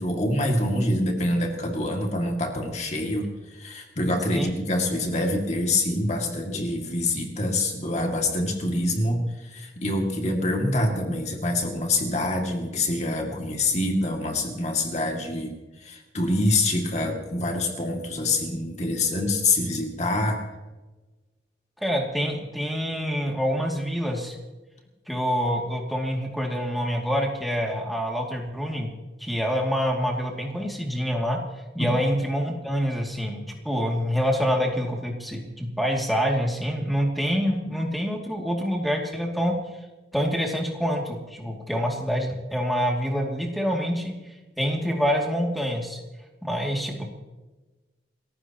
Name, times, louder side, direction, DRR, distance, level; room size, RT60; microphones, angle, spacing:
voice 1, 0.0-15.5 15.8-20.4 31.8-31.9, left 2 dB, 40° left, 2 dB, 2.2 m, -26 dB
voice 2, 21.8-24.4 25.1-28.9 29.2-31.4 31.7-39.6 40.1-44.2 44.6-46.0 46.4-47.1, equal, ahead, 0 dB, 2.4 m, -26 dB
29.0 x 14.5 x 3.0 m, 1.2 s
head